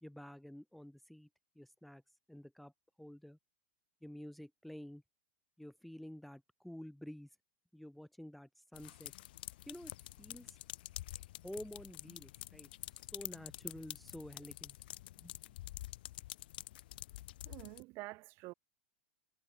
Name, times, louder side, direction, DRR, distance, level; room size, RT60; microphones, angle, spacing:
voice 1, 0.0-1.3 1.5-2.0 2.3-2.7 3.0-3.4 4.0-5.0 5.6-7.3 7.7-9.1 9.7-10.6 11.4-14.7 15.2-15.4, left 1 dB, ahead, 1.0 m, -50 dB
sound 1, 8.7-17.8, left 16 dB, 70° left, 1.2 m, -48 dB
voice 2, 17.4-18.5, right 23 dB, 45° right, 4.1 m, -48 dB
supercardioid pair, 130°, 5 cm